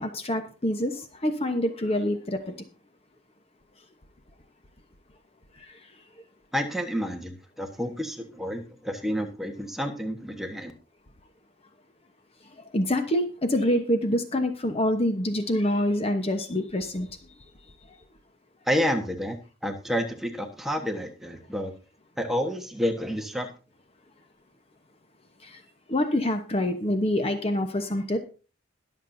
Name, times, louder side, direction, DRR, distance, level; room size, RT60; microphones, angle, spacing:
voice 1, 0.0-2.4 12.7-13.2 13.5-17.1 25.9-28.2, left 1 dB, 30° left, 7 dB, 1.0 m, -26 dB
voice 2, 6.5-10.7 18.7-21.7 22.2-23.5, equal, ahead, 4 dB, 1.3 m, -29 dB
21.5 x 7.4 x 2.7 m, 0.35 s
head